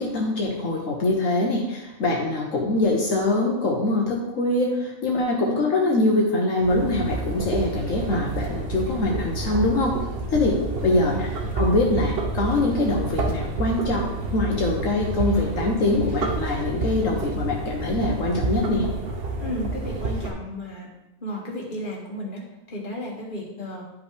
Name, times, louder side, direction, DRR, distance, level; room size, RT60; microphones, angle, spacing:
voice 1, 0.0-9.9 10.3-11.3 11.5-14.1 14.3-18.9, left 2 dB, 75° left, -1 dB, 1.4 m, -23 dB
sound 1, 6.6-20.3, right 3 dB, 50° right, 1.1 m, -29 dB
voice 2, 19.4-20.9 21.2-22.4 22.7-23.8, left 1 dB, 40° left, -3 dB, 1.9 m, -33 dB
11.0 x 5.2 x 3.3 m, 0.94 s
omnidirectional pair, 1.4 m